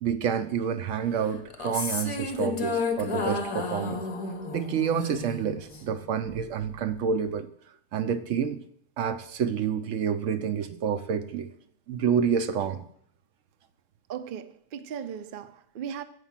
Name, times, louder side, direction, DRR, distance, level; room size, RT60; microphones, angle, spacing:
voice 1, 0.0-4.0 4.5-7.5 7.9-8.6 9.0-11.5 11.9-12.8, right 7 dB, 80° right, 1.0 m, -28 dB
sound 1, 1.5-5.9, left 3 dB, 30° left, 0.7 m, -32 dB
voice 2, 14.1-16.0, right 8 dB, 55° right, 0.6 m, -37 dB
8.2 x 5.1 x 7.4 m
omnidirectional pair, 1.3 m